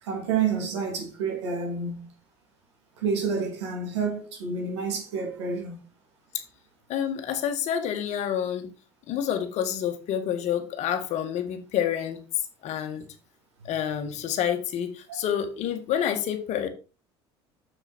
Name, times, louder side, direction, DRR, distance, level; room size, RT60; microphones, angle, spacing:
voice 1, 0.0-2.1 3.0-5.7 13.6-13.7, right 5 dB, 80° right, 3.3 m, -29 dB
voice 2, 6.9-8.7 9.1-13.1 13.6-16.7, left 9 dB, 55° left, 1.8 m, -28 dB
7.0 x 6.8 x 4.4 m
hypercardioid pair, 65°, 14 cm